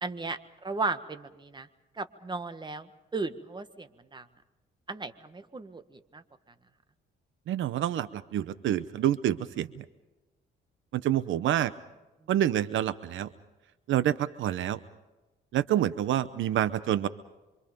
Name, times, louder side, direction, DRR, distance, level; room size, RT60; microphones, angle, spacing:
voice 1, 0.0-1.7 2.0-4.2 4.9-6.2, right 3 dB, 20° right, 10 dB, 1.6 m, -36 dB
voice 2, 7.5-9.8 10.9-11.7 12.3-13.3 13.9-14.8 15.5-17.1, right 11 dB, 75° right, 14 dB, 0.9 m, -27 dB
26.5 x 25.5 x 5.3 m, 1.1 s
cardioid pair, 90°, 20 cm